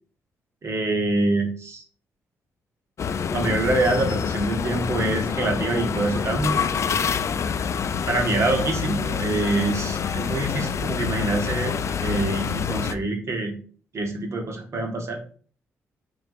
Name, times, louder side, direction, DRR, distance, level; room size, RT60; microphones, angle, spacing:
voice 1, 0.6-1.8 3.3-6.6 8.1-11.7 12.0-13.5 13.9-15.2, right 2 dB, 50° right, 3 dB, 1.1 m, -25 dB
sound 1, 3.0-13.0, left 6 dB, 50° left, 0.4 m, -27 dB
3.5 x 2.4 x 4.4 m, 0.43 s
supercardioid pair, 50°, 6 cm